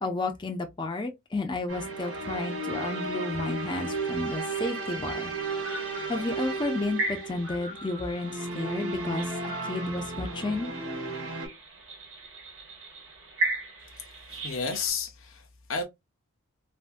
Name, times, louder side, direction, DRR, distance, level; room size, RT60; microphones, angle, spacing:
voice 1, 0.0-5.3 6.1-10.7, left 2 dB, 20° left, 0.4 m, -32 dB
sound 1, 1.7-11.5, right 3 dB, 90° right, 1.8 m, -34 dB
sound 2, 5.5-14.9, right 2 dB, 55° right, 1.4 m, -37 dB
voice 2, 13.9-15.8, left 5 dB, 65° left, 0.6 m, -33 dB
3.4 x 2.1 x 2.4 m
head